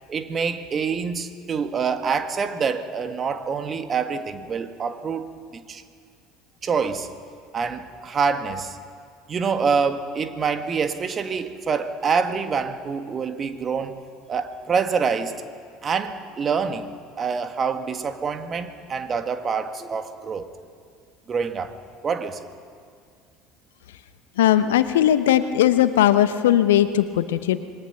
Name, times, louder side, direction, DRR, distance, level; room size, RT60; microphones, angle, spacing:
voice 1, 0.1-5.8 6.6-7.1 7.5-8.8 9.3-14.0 14.3-15.4 15.8-20.5 21.3-21.8 22.0-22.4, right 5 dB, 35° right, 8 dB, 1.8 m, -26 dB
voice 2, 24.4-27.6, left 12 dB, 70° left, 12 dB, 0.9 m, -18 dB
27.0 x 21.0 x 5.9 m, 2.2 s
figure-of-eight pair, 65°, 0 cm